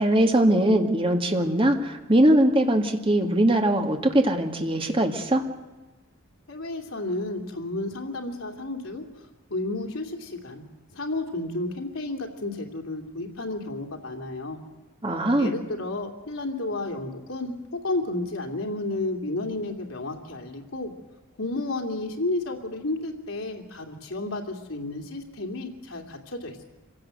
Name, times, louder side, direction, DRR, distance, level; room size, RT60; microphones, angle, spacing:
voice 1, 0.0-5.4 15.0-15.5, right 1 dB, 25° right, 4 dB, 2.0 m, -21 dB
voice 2, 6.5-10.6 10.9-14.6 15.4-20.9 21.4-26.6, left 2 dB, 85° left, 2 dB, 2.8 m, -32 dB
26.0 x 17.0 x 7.9 m, 1.2 s
head